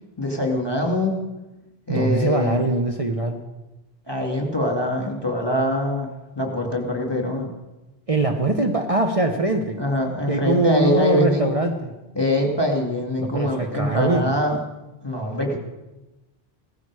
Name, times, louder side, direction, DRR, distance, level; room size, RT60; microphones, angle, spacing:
voice 1, 0.2-1.2 1.9-2.6 4.1-7.5 9.8-11.5 12.2-14.6 15.0-15.6, left 1 dB, 25° left, 1 dB, 2.6 m, -23 dB
voice 2, 1.9-3.4 8.1-9.8 10.3-11.9 13.2-14.3, right 2 dB, 35° right, 4 dB, 1.1 m, -22 dB
17.0 x 14.5 x 4.9 m, 1.0 s
omnidirectional pair, 1.0 m